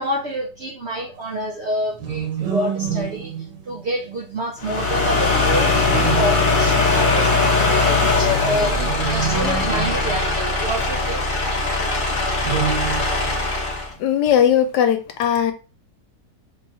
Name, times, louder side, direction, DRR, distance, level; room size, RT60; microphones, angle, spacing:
voice 1, 0.0-11.2, right 1 dB, 60° right, 0.7 m, -28 dB
sound 1, 1.9-4.2 5.8-7.0 8.7-11.0 12.4-13.5, right 8 dB, 85° right, 1.4 m, -28 dB
sound 2, 4.6-13.9, left 3 dB, 40° left, 0.7 m, -20 dB
voice 2, 14.0-15.5, left 9 dB, 85° left, 1.2 m, -18 dB
3.2 x 2.4 x 3.9 m
omnidirectional pair, 1.8 m